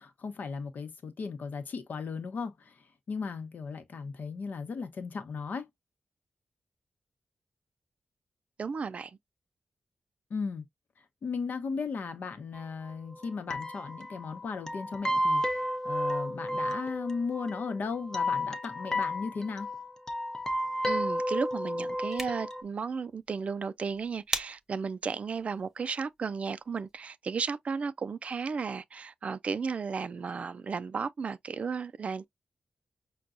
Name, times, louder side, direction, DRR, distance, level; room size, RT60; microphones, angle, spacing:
voice 1, 0.0-5.7 10.3-10.6 11.2-19.7, left 5 dB, 65° left, 0.9 m, -36 dB
voice 2, 8.6-9.2 20.9-32.3, right 5 dB, 45° right, 0.3 m, -34 dB
sound 1, 12.5-12.6 12.9-13.0 13.2-13.3 13.5-22.6, left 1 dB, 15° left, 0.6 m, -32 dB
sound 2, 21.9-27.0, right 1 dB, 10° right, 1.0 m, -42 dB
5.9 x 2.3 x 2.5 m
wide cardioid pair, 160°, 3 cm